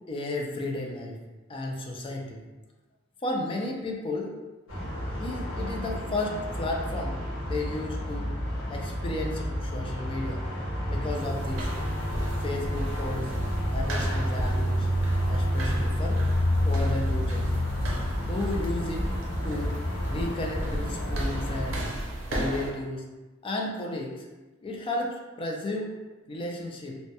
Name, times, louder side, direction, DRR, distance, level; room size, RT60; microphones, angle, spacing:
voice 1, 0.1-1.2 1.5-2.4 3.2-4.3 5.2-7.2 7.5-8.3 8.7-10.4 10.9-11.7 12.4-13.3 13.7-14.9 15.3-16.2 16.6-17.5 18.3-19.0 19.4-19.8 20.1-21.9 22.3-23.1 23.4-24.3 24.6-25.9 26.3-27.0, left 2 dB, 25° left, 0 dB, 0.3 m, -33 dB
sound 1, 4.7-21.8, equal, 70° left, 0.7 m, -30 dB
sound 2, 11.1-22.7, right 1 dB, 70° right, 0.5 m, -34 dB
2.2 x 2.1 x 2.7 m, 1.2 s
head